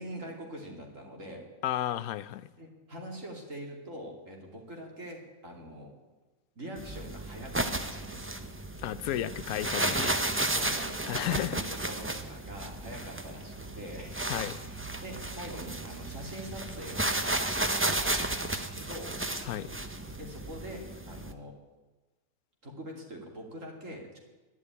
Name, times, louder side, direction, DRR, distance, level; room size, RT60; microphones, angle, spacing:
voice 1, 0.0-1.4 2.6-5.9 6.6-8.4 10.4-19.2 20.2-21.6 22.6-24.2, equal, 60° right, 1 dB, 3.2 m, -44 dB
voice 2, 1.6-2.5 8.8-10.2 11.1-11.6 14.3-14.6 19.4-19.7, left 13 dB, 85° left, 16 dB, 1.1 m, -33 dB
sound 1, 6.8-21.3, right 2 dB, 15° right, 0.5 m, -33 dB
11.0 x 11.0 x 9.8 m, 1.2 s
omnidirectional pair, 1.5 m